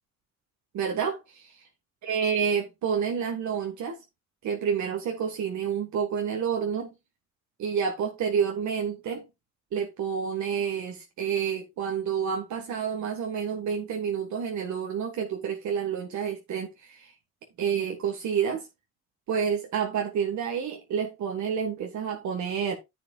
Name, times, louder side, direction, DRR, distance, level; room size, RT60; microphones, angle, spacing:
voice 1, 0.7-1.5 2.0-4.0 4.4-6.9 7.6-9.3 9.7-17.1 17.6-18.6 19.3-22.7, right 7 dB, 70° right, 1.6 m, -29 dB
10.0 x 7.7 x 2.4 m
cardioid pair, 90°, 30 cm